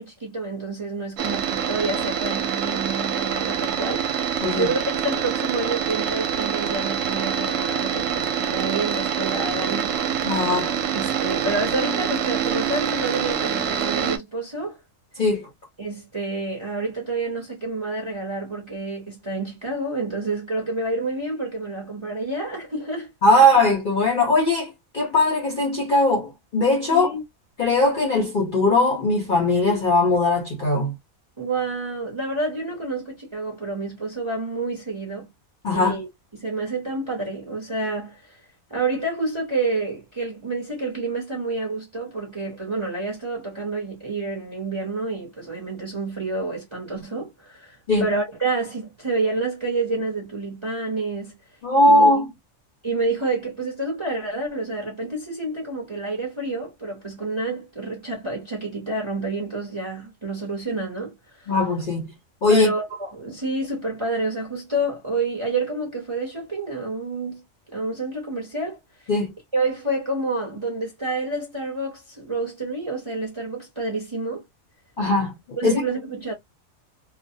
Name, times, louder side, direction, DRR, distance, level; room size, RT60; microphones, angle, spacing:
voice 1, 0.0-4.3 4.6-9.9 10.9-14.8 15.8-23.1 23.4-23.5 26.9-27.2 31.4-35.3 35.7-36.1 36.3-38.4 38.7-51.3 51.8-52.2 52.8-61.5 62.5-67.4 67.7-68.8 69.5-74.4 75.6-76.3, right 2 dB, 30° right, 0.6 m, -28 dB
sound 1, 1.2-14.2, right 8 dB, 70° right, 0.9 m, -25 dB
voice 2, 10.2-10.7 15.2-15.5 23.2-27.1 27.6-30.9 35.6-36.0 47.9-48.1 51.6-52.3 61.5-62.0 62.4-62.7 69.1-69.3 75.0-75.8, left 2 dB, 45° left, 0.7 m, -20 dB
2.4 x 2.0 x 2.6 m
omnidirectional pair, 1.5 m